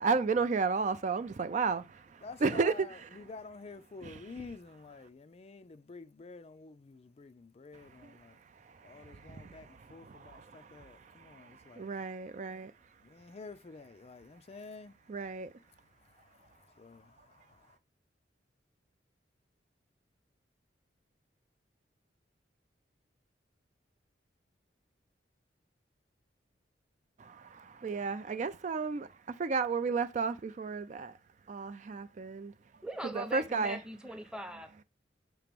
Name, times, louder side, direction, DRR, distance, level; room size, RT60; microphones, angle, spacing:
voice 1, 0.0-3.1 4.0-4.2 8.0-8.1 8.8-10.9 11.2-12.7 15.1-15.5 27.2-29.1 29.4-31.1 31.5-32.5 33.1-33.8, right 4 dB, 40° right, 0.4 m, -33 dB
voice 2, 2.2-8.4 8.8-11.9 13.0-15.0 16.1-17.8, left 3 dB, 35° left, 0.4 m, -50 dB
voice 3, 32.8-34.8, right 1 dB, 5° right, 0.8 m, -41 dB
6.6 x 3.0 x 5.2 m
head